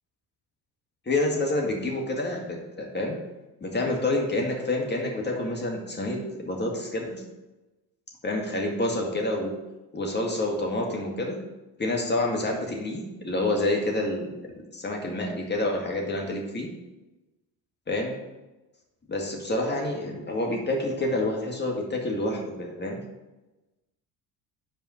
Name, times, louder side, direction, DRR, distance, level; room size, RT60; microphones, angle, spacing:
voice 1, 1.1-3.2 3.6-7.2 8.2-9.5 9.9-11.4 11.8-14.3 14.7-16.7 17.9-18.1 19.1-23.0, left 2 dB, 20° left, 0 dB, 1.9 m, -28 dB
5.4 x 4.8 x 6.2 m, 1.1 s
hypercardioid pair, 65°, 46 cm